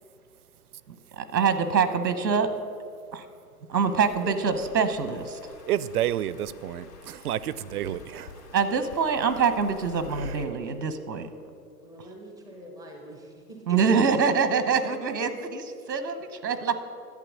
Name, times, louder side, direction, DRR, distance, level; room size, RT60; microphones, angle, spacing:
voice 1, 1.2-2.5 3.1-3.2 3.7-5.4 8.5-11.3 13.7-16.8, right 5 dB, 85° right, 11 dB, 1.1 m, -25 dB
sound 1, 3.7-10.5, left 6 dB, 70° left, 2.7 m, -47 dB
voice 2, 5.7-8.4 10.2-10.3, right 11 dB, 65° right, 17 dB, 0.5 m, -30 dB
voice 3, 8.0-8.6 11.8-13.8, equal, 5° left, 1 dB, 0.4 m, -45 dB
11.0 x 7.8 x 6.3 m, 2.4 s
hypercardioid pair, 130°, 50 cm